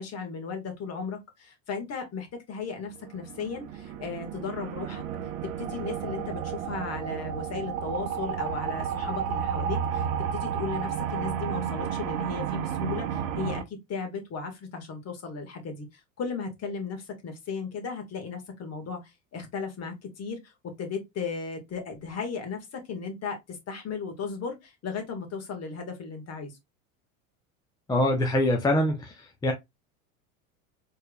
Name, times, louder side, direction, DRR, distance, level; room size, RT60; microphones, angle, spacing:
voice 1, 0.0-5.0 5.4-10.1 10.3-15.9 16.2-26.5, left 5 dB, 40° left, 1.6 m, -36 dB
sound 1, 3.0-13.6, right 8 dB, 80° right, 0.7 m, -32 dB
voice 2, 27.9-29.0 29.4-29.5, left 1 dB, 10° left, 0.6 m, -23 dB
4.4 x 3.3 x 2.3 m
hypercardioid pair, 100°, 41 cm